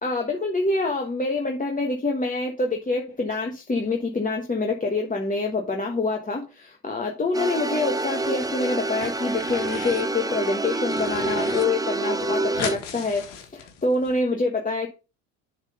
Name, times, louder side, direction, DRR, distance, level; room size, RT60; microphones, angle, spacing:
voice 1, 0.0-13.3 13.5-14.9, left 3 dB, 20° left, 1 dB, 1.3 m, -26 dB
sound 1, 7.3-12.8, right 2 dB, 10° right, 0.7 m, -27 dB
sound 2, 7.9-8.5 8.8-10.1 10.5-11.6 11.9-12.0 12.2-14.1, left 7 dB, 80° left, 1.5 m, -37 dB
7.2 x 3.7 x 5.4 m, 0.32 s
supercardioid pair, 75°, 38 cm